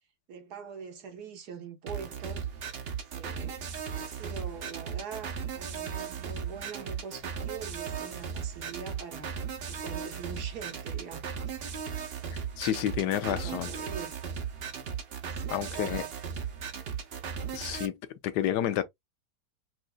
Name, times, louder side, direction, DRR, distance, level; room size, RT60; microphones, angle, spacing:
voice 1, 0.3-2.5 3.1-3.6 3.9-9.3 9.6-11.6 11.9-14.1 15.2-16.1, right 6 dB, 70° right, 1.5 m, -44 dB
sound 1, 1.9-17.9, right 7 dB, 50° right, 0.8 m, -37 dB
voice 2, 12.6-13.7 15.5-16.0 17.5-18.0 18.2-18.8, left 11 dB, 85° left, 1.2 m, -29 dB
5.9 x 2.6 x 2.2 m
omnidirectional pair, 1.8 m